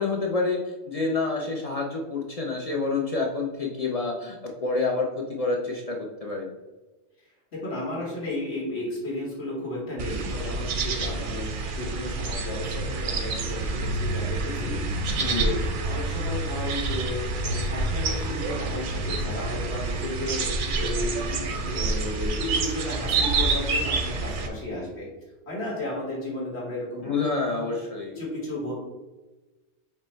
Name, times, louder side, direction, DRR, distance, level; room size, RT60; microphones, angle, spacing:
voice 1, 0.0-6.5 15.2-15.6 27.0-28.1, left 3 dB, 45° left, -1 dB, 0.5 m, -28 dB
voice 2, 7.5-15.5 15.8-25.1 25.5-27.1 28.1-28.7, left 1 dB, 65° left, -4 dB, 1.8 m, -33 dB
sound 1, 10.0-24.5, right 3 dB, 60° right, 0.6 m, -28 dB
5.3 x 2.1 x 4.3 m, 1.1 s
omnidirectional pair, 1.2 m